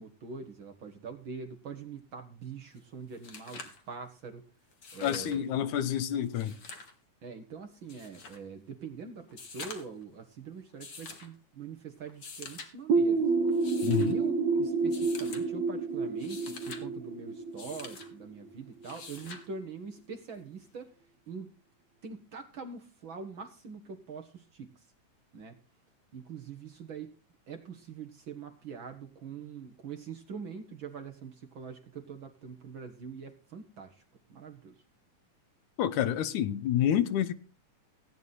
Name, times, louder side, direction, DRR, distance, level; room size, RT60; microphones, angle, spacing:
voice 1, 0.0-4.4 4.9-5.7 7.2-13.3 14.0-20.9 21.3-21.5 22.0-24.9 25.3-25.6 26.1-27.1 27.5-34.0 34.3-34.7, right 5 dB, 50° right, 1.6 m, -43 dB
sound 1, 2.8-2.9 3.1-3.8 4.7-5.4 6.2-6.9 7.9-8.4 9.3-10.0 10.8-11.3 12.1-12.7 13.5-14.1 14.9-15.4 16.1-16.8 17.6-18.1 18.8-19.5 20.9-21.0, left 4 dB, 40° left, 2.1 m, -46 dB
voice 2, 5.0-6.6 13.8-14.2 35.8-37.3, left 10 dB, 80° left, 2.4 m, -28 dB
sound 2, 12.9-18.5, right 4 dB, 65° right, 2.0 m, -29 dB
16.5 x 9.3 x 4.0 m
omnidirectional pair, 3.6 m